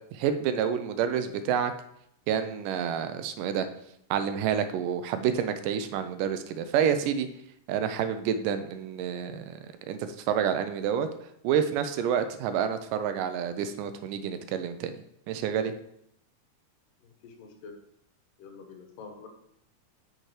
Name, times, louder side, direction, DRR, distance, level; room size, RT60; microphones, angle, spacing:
voice 1, 0.1-1.7 2.3-3.7 4.1-7.3 7.7-9.6 9.9-11.1 11.4-15.0 15.3-15.7, right 8 dB, 85° right, 10 dB, 2.2 m, -28 dB
voice 2, 17.0-17.8 18.4-19.3, left 5 dB, 90° left, 4 dB, 2.8 m, -47 dB
9.0 x 5.9 x 3.2 m, 0.72 s
omnidirectional pair, 3.8 m